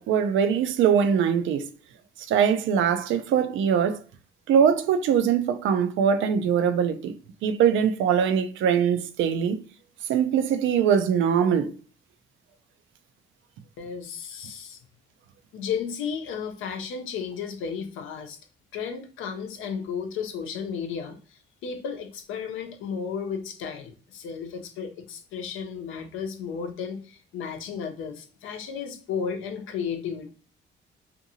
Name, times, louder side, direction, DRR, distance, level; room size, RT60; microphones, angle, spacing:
voice 1, 0.0-1.7 2.3-4.0 4.5-7.1 7.4-9.6 10.1-11.7, right 7 dB, 80° right, 0.4 m, -22 dB
voice 2, 13.8-14.8 15.5-18.4 18.7-30.3, left 6 dB, 85° left, 0.6 m, -33 dB
2.7 x 2.6 x 2.7 m
cardioid pair, 90°, 20 cm